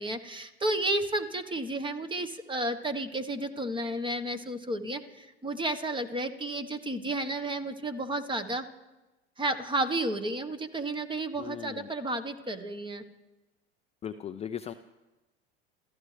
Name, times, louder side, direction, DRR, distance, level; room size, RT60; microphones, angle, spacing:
voice 1, 0.0-8.6 9.4-13.0, right 1 dB, 15° right, 9 dB, 1.3 m, -32 dB
voice 2, 11.4-11.9 14.0-14.7, left 8 dB, 20° left, 8 dB, 0.5 m, -38 dB
28.5 x 14.5 x 3.4 m, 1.1 s
hypercardioid pair, 90°, 32 cm